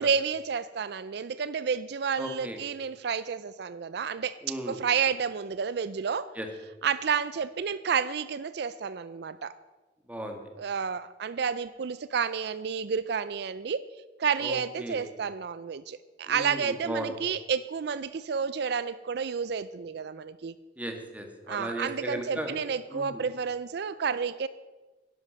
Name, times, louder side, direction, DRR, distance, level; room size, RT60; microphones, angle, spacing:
voice 1, 0.0-4.4 4.7-6.3 6.8-9.5 10.6-13.9 14.2-20.5 21.5-24.5, right 6 dB, 65° right, 16 dB, 0.4 m, -30 dB
voice 2, 2.2-2.6 4.4-4.8 6.4-6.5 10.1-10.4 14.4-15.0 16.3-17.1 20.8-22.5 22.9-23.2, right 1 dB, 10° right, 4 dB, 1.7 m, -36 dB
11.0 x 11.0 x 6.5 m, 1.2 s
head